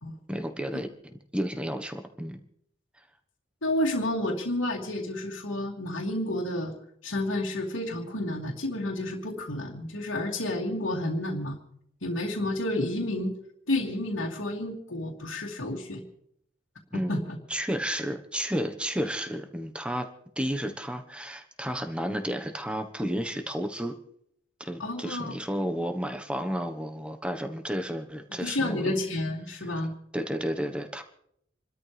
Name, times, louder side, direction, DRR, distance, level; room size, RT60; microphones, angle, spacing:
voice 1, 0.3-2.4 16.9-17.1 17.5-20.1 20.4-24.0 24.6-29.0 30.1-31.0, equal, 5° right, 6 dB, 1.2 m, -32 dB
voice 2, 3.6-6.7 7.0-11.6 12.0-13.3 13.7-16.0 16.9-17.4 24.8-25.4 28.4-29.9, left 1 dB, 90° left, -5 dB, 2.6 m, -30 dB
28.5 x 13.0 x 3.4 m, 0.71 s
head